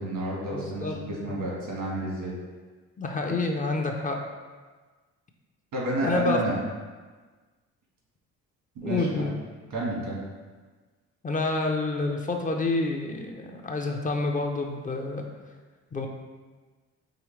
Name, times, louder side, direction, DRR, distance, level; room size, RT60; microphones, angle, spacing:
voice 1, 0.0-2.3 5.7-6.6 8.7-9.2 9.7-10.2, right 1 dB, 90° right, -4 dB, 1.5 m, -30 dB
voice 2, 0.5-1.0 1.3-1.4 3.0-4.2 6.0-6.4 8.8-9.3 11.2-15.2 15.9-16.1, left 3 dB, 25° left, 2 dB, 0.5 m, -28 dB
4.9 x 3.1 x 3.1 m, 1.4 s
cardioid pair, 90°, 30 cm